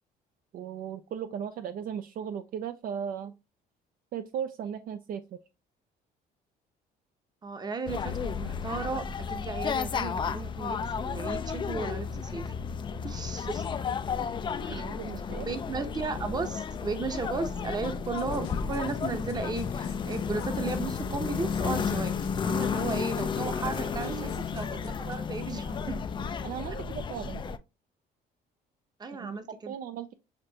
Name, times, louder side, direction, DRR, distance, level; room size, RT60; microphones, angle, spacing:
voice 1, 0.5-3.3 4.1-5.4 14.7-15.5 24.0-24.3 26.4-27.4 29.2-29.4 29.7-30.1, right 8 dB, 55° right, 0.5 m, -37 dB
voice 2, 7.4-12.5 13.0-13.6 14.6-14.8 15.5-22.1 22.4-26.0 29.0-29.7, right 4 dB, 25° right, 0.8 m, -35 dB
sound 1, 7.9-27.6, left 6 dB, 30° left, 0.4 m, -32 dB
sound 2, 17.9-25.2, left 9 dB, 85° left, 0.5 m, -48 dB
6.6 x 2.5 x 2.8 m
cardioid pair, 110°, 17 cm